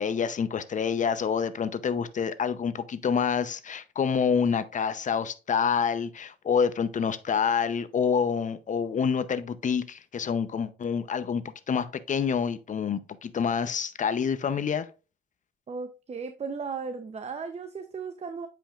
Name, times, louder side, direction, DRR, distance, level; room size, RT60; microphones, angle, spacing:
voice 1, 0.0-14.9, left 6 dB, 40° left, 0.6 m, -27 dB
voice 2, 15.7-18.5, right 5 dB, 35° right, 0.6 m, -36 dB
8.7 x 5.2 x 2.4 m
cardioid pair, 90°, 20 cm